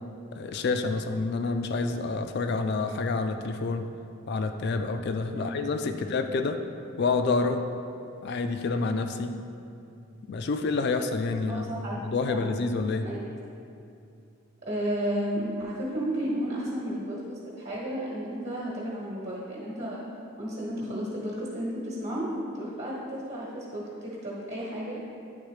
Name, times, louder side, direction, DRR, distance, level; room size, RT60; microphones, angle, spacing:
voice 1, 0.3-3.8 4.3-6.6 7.0-7.6 8.2-9.3 10.3-11.7 12.0-13.0, left 3 dB, 50° left, 7 dB, 0.3 m, -28 dB
voice 2, 11.5-12.0 12.2-12.4 13.0-13.3 14.7-20.0 20.4-25.0, equal, 45° right, -7 dB, 1.2 m, -33 dB
10.0 x 3.5 x 3.3 m, 2.5 s
head